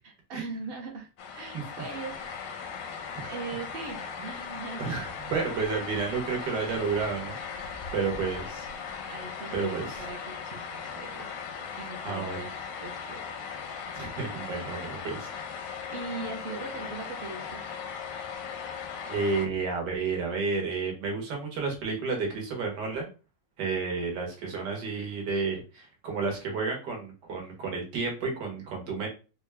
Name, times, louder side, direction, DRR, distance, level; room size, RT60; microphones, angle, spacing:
voice 1, 0.0-1.1 1.3-3.0 3.2-5.0 9.1-11.5 11.8-12.5 12.8-13.3 15.6-17.6, right 4 dB, 55° right, 2 dB, 0.6 m, -40 dB
sound 1, 1.2-19.5, left 6 dB, 85° left, 1.3 m, -38 dB
voice 2, 4.8-8.7 9.5-10.0 12.0-12.4 13.9-15.3 19.1-23.1 23.6-29.1, right 4 dB, 70° right, 1 dB, 1.7 m, -31 dB
3.9 x 2.3 x 3.2 m, 0.33 s
omnidirectional pair, 2.0 m